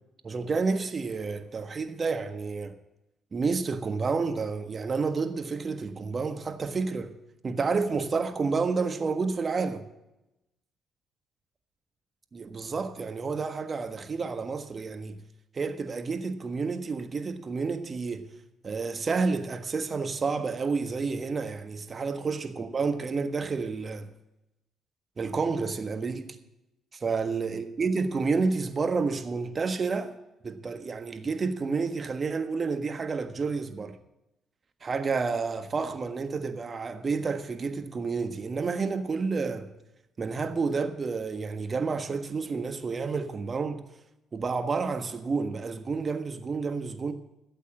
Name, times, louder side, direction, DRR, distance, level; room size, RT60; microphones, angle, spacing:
voice 1, 0.2-2.8 3.3-7.1 7.4-9.9 12.3-15.2 15.5-18.3 18.6-24.1 25.2-26.4 27.0-30.2 30.4-34.0 34.8-39.7 40.2-43.8 44.3-47.1, right 4 dB, 40° right, 1.4 m, -30 dB
12.5 x 8.2 x 7.7 m
hypercardioid pair, 55°, 0 cm